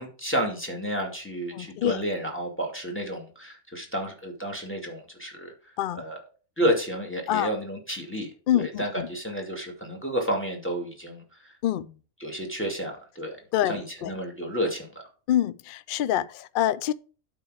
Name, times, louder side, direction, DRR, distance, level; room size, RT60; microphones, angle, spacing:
voice 1, 0.0-5.5 6.0-6.2 6.6-8.3 8.5-11.2 12.2-13.4 13.7-15.0, equal, 10° left, 2.3 m, -31 dB
voice 2, 1.5-2.0 5.8-6.0 7.3-7.5 8.5-9.1 11.6-11.9 13.5-14.1 15.3-16.9, left 12 dB, 75° left, 0.5 m, -26 dB
12.0 x 4.3 x 4.9 m
omnidirectional pair, 1.5 m